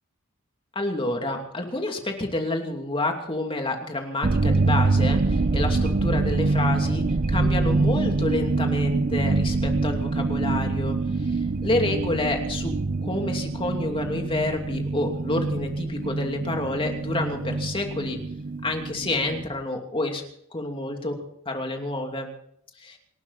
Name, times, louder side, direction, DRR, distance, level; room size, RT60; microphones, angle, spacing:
voice 1, 0.7-12.7 13.0-18.2 18.6-20.2 20.5-21.2 21.5-22.3 22.8-23.0, left 2 dB, 25° left, 3 dB, 2.7 m, -29 dB
sound 1, 4.2-19.4, right 3 dB, 40° right, 0.6 m, -25 dB
27.5 x 12.0 x 4.2 m, 0.67 s
head